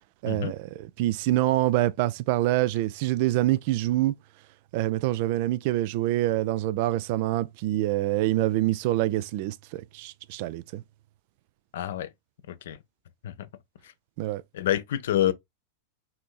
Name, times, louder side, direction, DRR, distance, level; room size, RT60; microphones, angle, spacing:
voice 1, 0.2-4.2 4.7-10.8 14.2-14.4, right 16 dB, 50° right, 0.3 m, -26 dB
voice 2, 11.7-12.1 12.5-12.8 13.2-13.5 14.5-15.3, left 11 dB, 60° left, 0.5 m, -27 dB
5.7 x 2.6 x 2.3 m
figure-of-eight pair, 90°, 0 cm